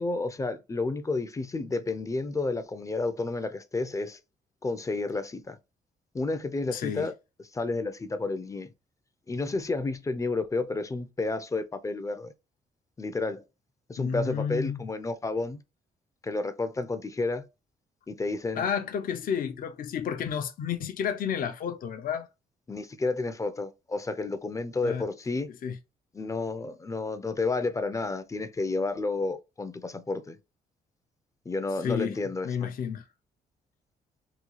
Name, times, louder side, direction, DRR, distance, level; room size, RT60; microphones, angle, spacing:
voice 1, 0.0-4.2 4.6-5.6 6.1-7.1 7.5-8.7 9.3-12.3 13.0-13.4 13.9-15.6 16.2-17.5 18.1-18.7 22.7-25.5 26.1-30.4 31.5-32.7, left 3 dB, 20° left, 0.5 m, -31 dB
voice 2, 6.7-7.1 14.0-14.8 18.6-22.3 24.8-25.0 25.6-25.8 31.8-32.2 32.4-33.0, left 7 dB, 60° left, 0.6 m, -31 dB
3.6 x 2.3 x 3.1 m
cardioid pair, 100°, 16 cm